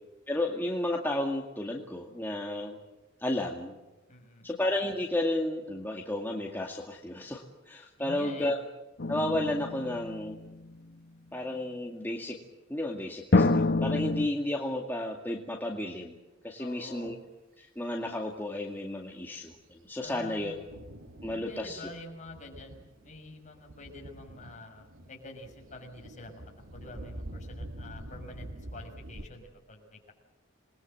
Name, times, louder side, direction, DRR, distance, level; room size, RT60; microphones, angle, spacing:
voice 1, 0.3-2.8 3.2-3.8 4.4-8.6 9.1-10.4 11.3-12.4 12.7-16.2 16.4-17.2 17.6-20.5 21.2-21.9, left 1 dB, 10° left, 0 dB, 2.1 m, -32 dB
voice 2, 4.1-4.5 8.0-8.5 16.6-17.1 20.0-20.6 21.3-26.4 26.7-30.1, left 2 dB, 40° left, 2 dB, 6.6 m, -47 dB
sound 1, 9.0-10.8 13.3-14.3, left 2 dB, 55° left, 1.3 m, -27 dB
Thunder, 19.5-29.2, right 1 dB, 85° right, 2.5 m, -46 dB
28.0 x 21.5 x 7.8 m, 1.1 s
head